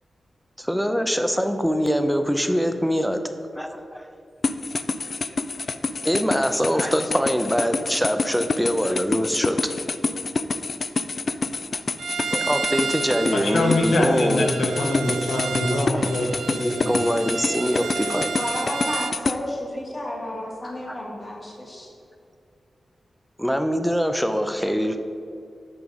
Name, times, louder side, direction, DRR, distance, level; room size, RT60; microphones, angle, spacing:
voice 1, 0.6-3.2 3.6-4.1 6.0-9.6 11.7-11.8 12.3-14.5 16.6-18.3 20.9-21.0 23.4-25.0, equal, ahead, 7 dB, 0.6 m, -23 dB
sound 1, 4.4-19.4, left 4 dB, 50° left, 0.3 m, -27 dB
Bowed string instrument, 12.0-19.2, right 5 dB, 85° right, 0.4 m, -32 dB
voice 2, 13.3-16.9, left 1 dB, 65° left, 2 dB, 1.2 m, -24 dB
voice 3, 18.4-21.9, left 1 dB, 30° left, -2 dB, 1.5 m, -32 dB
8.1 x 5.3 x 4.9 m, 2.5 s
wide cardioid pair, 95°, 0 cm